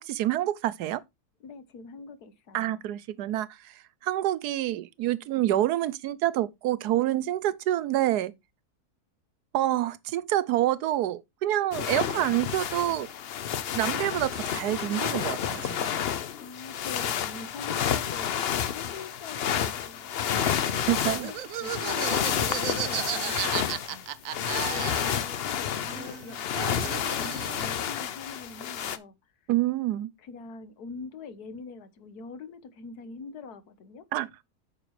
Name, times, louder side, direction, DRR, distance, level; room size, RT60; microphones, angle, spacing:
voice 1, 0.1-1.0 2.5-3.5 4.0-8.3 9.5-13.1 13.7-15.9 20.9-21.3 29.5-30.1 34.1-34.4, right 14 dB, 90° right, 1.2 m, -27 dB
voice 2, 1.4-2.8 16.4-20.3 21.2-26.4 26.7-29.1 30.2-34.0, left 4 dB, 80° left, 1.6 m, -44 dB
sound 1, 11.7-29.0, left 9 dB, 55° left, 0.7 m, -30 dB
Laughter, 20.3-25.5 25.8-27.7, right 11 dB, 65° right, 1.0 m, -35 dB
9.0 x 6.6 x 3.2 m
omnidirectional pair, 1.7 m